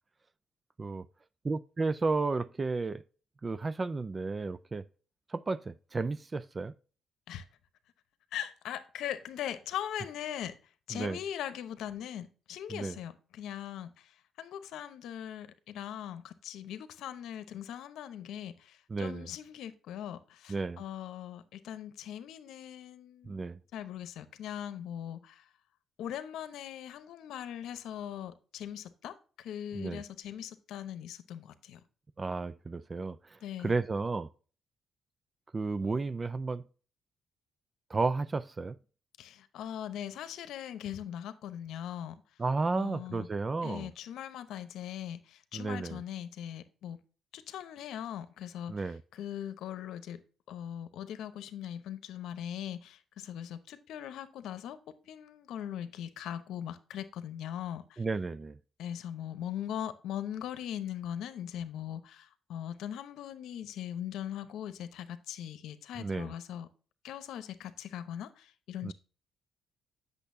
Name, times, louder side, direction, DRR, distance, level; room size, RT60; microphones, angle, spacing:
voice 1, 1.4-3.0 3.4-4.9 5.3-6.7 10.9-11.2 12.7-13.0 18.9-19.3 20.5-20.8 23.3-23.6 29.7-30.0 32.2-34.3 35.5-36.6 37.9-38.8 42.4-43.9 45.5-46.0 48.7-49.0 58.0-58.6 66.0-66.3 68.8-68.9, right 3 dB, 30° right, 0.3 m, -33 dB
voice 2, 8.3-10.5 10.9-14.1 14.4-23.4 23.7-25.4 26.0-31.8 33.4-33.7 39.2-42.2 42.8-43.3 43.6-47.0 47.3-48.7 49.1-50.2 50.5-54.8 55.1-58.0 58.8-66.7 67.0-68.9, left 10 dB, 85° left, 0.8 m, -40 dB
8.4 x 6.6 x 2.6 m
cardioid pair, 90°, 0 cm